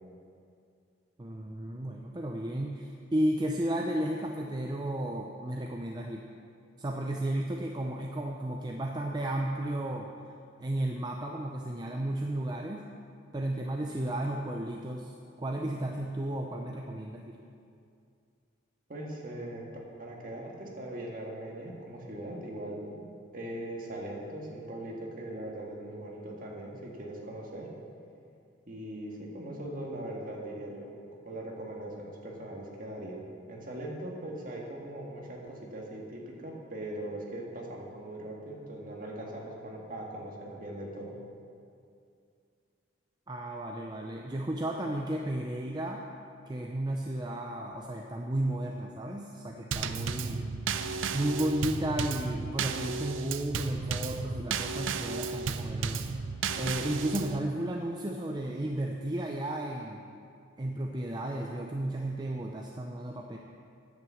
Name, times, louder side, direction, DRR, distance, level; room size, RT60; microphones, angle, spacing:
voice 1, 1.2-6.2 6.8-10.1 10.6-12.9 13.3-15.1 15.4-17.4 43.3-46.0 46.5-50.4 51.1-56.0 56.6-60.0 60.6-63.4, right 1 dB, 20° right, 1 dB, 0.5 m, -33 dB
voice 2, 18.9-19.6 20.0-27.7 28.7-33.2 33.5-41.2, right 1 dB, 45° right, -2 dB, 1.8 m, -40 dB
Drum kit / Snare drum / Bass drum, 49.7-57.4, right 5 dB, 85° right, 0.5 m, -33 dB
9.3 x 7.8 x 7.2 m, 2.4 s
head